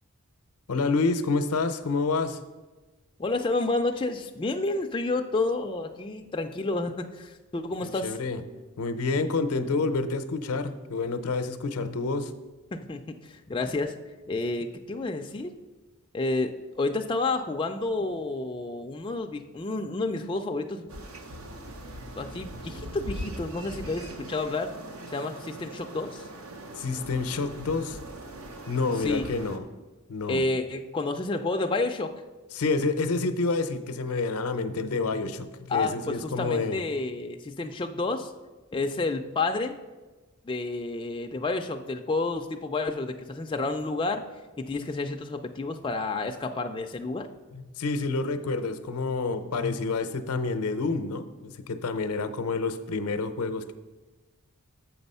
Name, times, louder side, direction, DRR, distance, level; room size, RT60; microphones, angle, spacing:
voice 1, 0.7-2.4 7.8-8.4 8.8-12.3 26.8-28.0 28.7-29.6 30.1-30.4 32.5-36.8 47.5-53.7, left 3 dB, 90° left, 10 dB, 0.6 m, -28 dB
voice 2, 3.2-8.1 12.7-14.0 14.3-15.5 16.1-16.5 16.8-20.9 22.2-24.7 25.1-26.3 29.0-29.2 30.3-32.1 35.7-38.3 38.7-39.8 40.4-44.2 44.6-47.3, left 3 dB, 20° left, 4 dB, 0.3 m, -30 dB
sound 1, 20.9-29.6, right 1 dB, 70° right, 0.9 m, -41 dB
7.0 x 6.0 x 5.4 m, 1.2 s
head